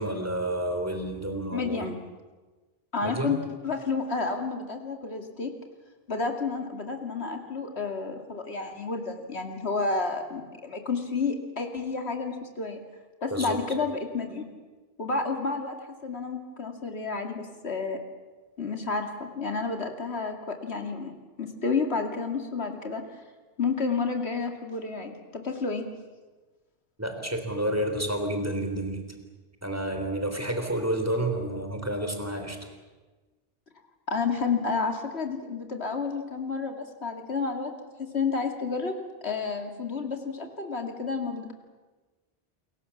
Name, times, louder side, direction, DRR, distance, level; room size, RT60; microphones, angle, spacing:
voice 1, 0.0-1.8 3.0-3.4 13.3-13.6 27.0-29.1 29.6-32.6, right 1 dB, 15° right, 5 dB, 3.4 m, -30 dB
voice 2, 1.5-2.0 2.9-5.5 6.1-12.8 13.2-14.5 15.0-15.7 16.0-18.0 18.6-21.1 21.4-23.0 23.6-25.8 34.1-37.7 38.1-38.9 39.2-41.5, left 4 dB, 85° left, 4 dB, 2.7 m, -30 dB
28.5 x 22.5 x 7.2 m, 1.3 s
omnidirectional pair, 1.1 m